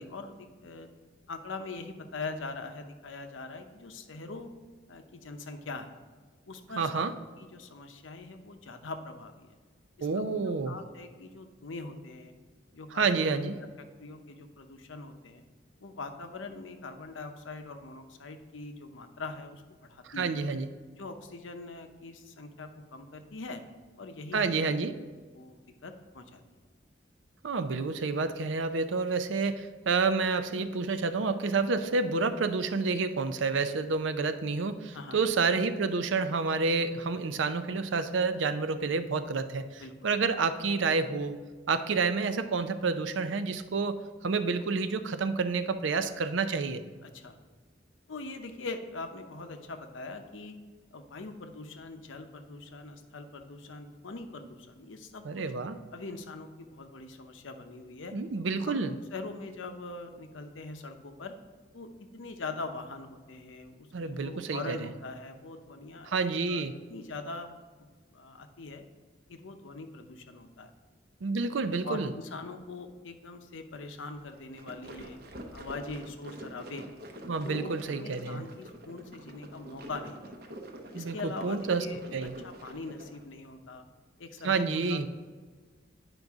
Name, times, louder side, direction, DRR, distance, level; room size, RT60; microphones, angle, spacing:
voice 1, 0.1-0.9 1.3-4.5 4.9-5.9 6.5-6.9 7.4-9.6 10.0-10.3 10.7-12.3 12.7-13.1 14.0-15.4 15.8-20.3 21.0-23.6 24.0-24.5 25.3-26.4 34.9-35.2 39.8-40.1 47.0-47.4 48.1-50.6 50.9-55.4 55.9-58.1 58.7-61.4 61.7-66.1 66.5-67.5 67.8-67.9 68.1-68.8 69.3-70.7 71.8-75.2 75.5-76.9 77.4-80.3 80.9-83.8 84.2-85.1, left 3 dB, 90° left, 7 dB, 0.7 m, -42 dB
voice 2, 6.8-7.1 10.0-10.8 12.9-13.6 20.0-20.7 24.3-25.0 27.4-41.4 41.7-44.0 44.2-46.8 55.2-55.8 58.1-58.9 63.9-64.9 66.0-66.7 71.2-72.1 77.3-78.4 80.9-81.9 82.1-82.3 84.4-85.1, right 4 dB, 80° right, 10 dB, 0.5 m, -29 dB
sound 1, 74.3-83.2, equal, 50° right, 0.8 m, -46 dB
9.2 x 5.3 x 3.5 m, 1.5 s
head